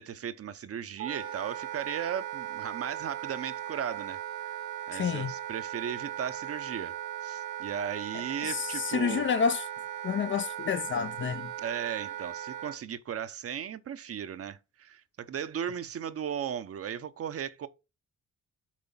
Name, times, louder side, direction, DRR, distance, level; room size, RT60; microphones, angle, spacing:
voice 1, 0.0-4.2 4.9-9.3 11.6-17.7, right 8 dB, 50° right, 0.8 m, -36 dB
Wind instrument woodwind instrument, 1.0-12.8, right 11 dB, 75° right, 1.1 m, -38 dB
voice 2, 4.9-5.3 8.4-9.6 10.0-11.5, left 7 dB, 40° left, 0.5 m, -29 dB
7.5 x 4.4 x 5.6 m
cardioid pair, 90°, 30 cm